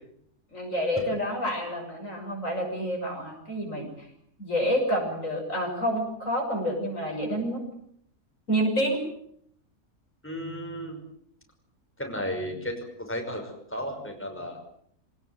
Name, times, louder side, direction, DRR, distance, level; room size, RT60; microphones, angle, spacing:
voice 1, 0.5-4.1 4.4-7.6 8.5-9.0, equal, 55° left, 1 dB, 6.9 m, -28 dB
voice 2, 10.2-11.0 12.0-12.7 13.0-14.6, equal, 5° left, 2 dB, 5.6 m, -34 dB
25.5 x 19.0 x 9.3 m, 0.69 s
omnidirectional pair, 1.6 m